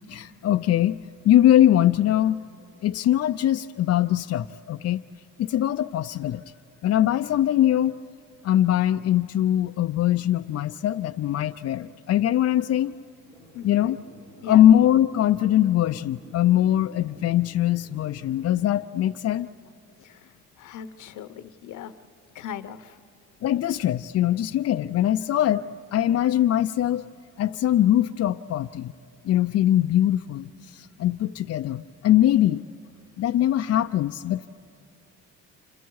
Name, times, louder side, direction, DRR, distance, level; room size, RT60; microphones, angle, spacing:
voice 1, 0.1-1.0 1.2-2.4 2.8-5.0 5.4-6.4 6.8-7.9 8.4-12.9 13.6-14.0 14.5-19.5 23.4-27.0 27.4-28.9 29.2-32.6 33.2-34.5, left 12 dB, 55° left, 6 dB, 0.5 m, -22 dB
sound 1, 13.2-18.7, equal, 90° right, 6.8 m, -51 dB
voice 2, 13.5-13.9 14.4-14.6 20.0-21.9 22.3-23.0, left 9 dB, 80° left, 11 dB, 0.9 m, -39 dB
29.0 x 27.5 x 4.7 m, 2.5 s
cardioid pair, 90°, 30 cm